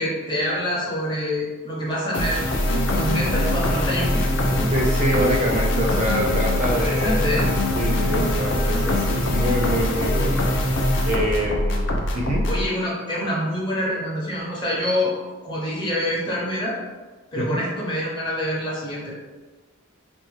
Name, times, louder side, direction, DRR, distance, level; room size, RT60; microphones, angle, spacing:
voice 1, 0.0-2.7 2.9-4.7 6.6-7.5 8.0-8.3 8.6-8.7 12.5-15.1 15.4-16.8 17.3-19.1, equal, 20° left, -5 dB, 0.7 m, -26 dB
sound 1, 2.1-12.6, left 1 dB, 55° left, 0.5 m, -22 dB
voice 2, 4.7-7.3 7.7-10.4 11.1-11.9 12.1-12.5 17.4-17.6, equal, 35° right, -2 dB, 0.4 m, -25 dB
4.1 x 2.1 x 3.1 m, 1.3 s
head